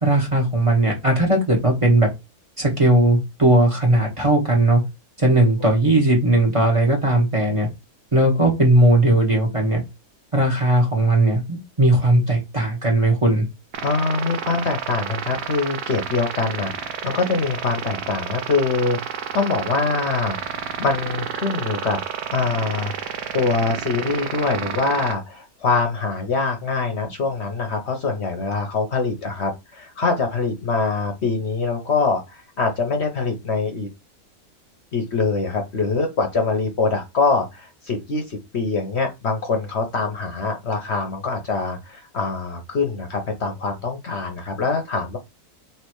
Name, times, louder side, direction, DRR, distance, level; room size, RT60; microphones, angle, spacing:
voice 1, 0.0-2.1 2.6-4.8 5.2-7.7 8.1-9.8 10.3-13.4, right 1 dB, 25° right, 1 dB, 1.3 m, -18 dB
sound 1, 13.7-25.1, right 8 dB, 90° right, 1.2 m, -30 dB
voice 2, 13.8-22.0 22.3-33.9 34.9-45.2, left 4 dB, 55° left, 4 dB, 1.0 m, -24 dB
3.3 x 3.2 x 4.5 m, 0.23 s
omnidirectional pair, 1.5 m